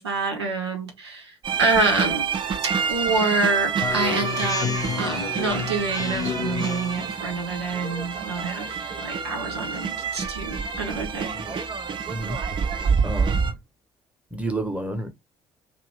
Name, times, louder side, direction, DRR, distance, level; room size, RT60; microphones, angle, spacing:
voice 1, 0.0-2.3 2.9-11.4, right 3 dB, 80° right, 0.7 m, -27 dB
sound 1, 1.4-13.5, right 6 dB, 35° right, 0.6 m, -28 dB
Speech synthesizer, 3.8-7.1, left 6 dB, 25° left, 0.6 m, -30 dB
voice 2, 12.1-12.4 13.0-13.5 14.3-15.1, right 1 dB, 10° right, 1.0 m, -30 dB
2.6 x 2.5 x 3.3 m
figure-of-eight pair, 50°, 14 cm